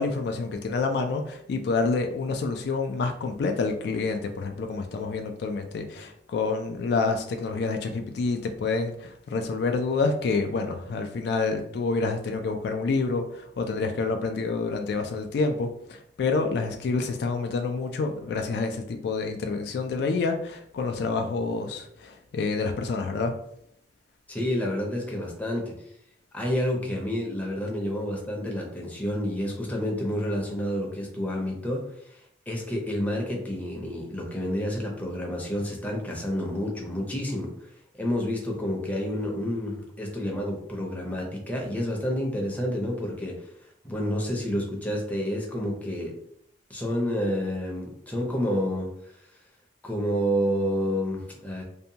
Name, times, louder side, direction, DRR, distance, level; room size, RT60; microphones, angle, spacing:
voice 1, 0.0-23.3, left 4 dB, 65° left, 5 dB, 0.3 m, -28 dB
voice 2, 24.3-25.7 26.3-31.8 32.5-37.5 38.0-43.5 43.8-46.1 46.7-48.9 49.8-51.6, equal, 10° left, -1 dB, 0.5 m, -29 dB
2.7 x 2.2 x 2.7 m, 0.71 s
head